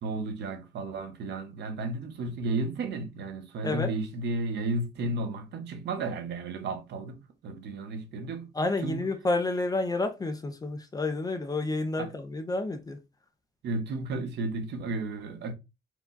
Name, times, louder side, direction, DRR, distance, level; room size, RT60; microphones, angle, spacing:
voice 1, 0.0-9.0 12.0-12.1 13.6-15.5, right 2 dB, 60° right, 0.9 m, -33 dB
voice 2, 8.6-13.0, left 2 dB, 20° left, 0.5 m, -30 dB
4.6 x 2.3 x 3.9 m
cardioid pair, 165°, 20 cm